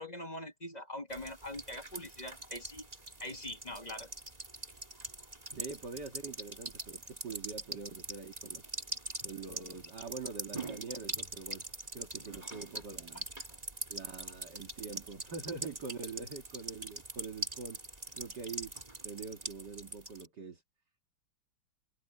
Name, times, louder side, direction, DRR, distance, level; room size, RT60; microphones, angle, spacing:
voice 1, 0.0-2.9 3.2-4.1 13.1-13.2, left 1 dB, 25° left, 1.4 m, -43 dB
sound 1, 1.1-20.3, right 2 dB, 20° right, 2.2 m, -43 dB
voice 2, 5.5-8.6 9.2-11.6 11.9-13.2 13.9-17.8 18.2-18.7 19.0-20.6, right 4 dB, 60° right, 2.9 m, -44 dB
omnidirectional pair, 2.1 m